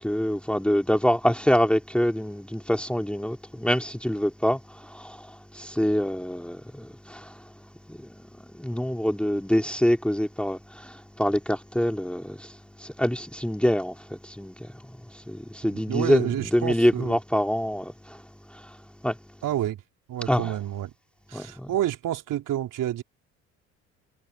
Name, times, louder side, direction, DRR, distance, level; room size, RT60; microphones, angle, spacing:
voice 1, 0.0-7.5 7.9-8.2 8.5-18.2 18.5-19.2 20.3-20.6 21.3-21.7, equal, 5° left, 3.7 m, -26 dB
voice 2, 15.7-17.2 19.4-19.8 20.1-20.9 21.3-23.0, right 12 dB, 55° right, 4.4 m, -29 dB
figure-of-eight pair, 55°, 37 cm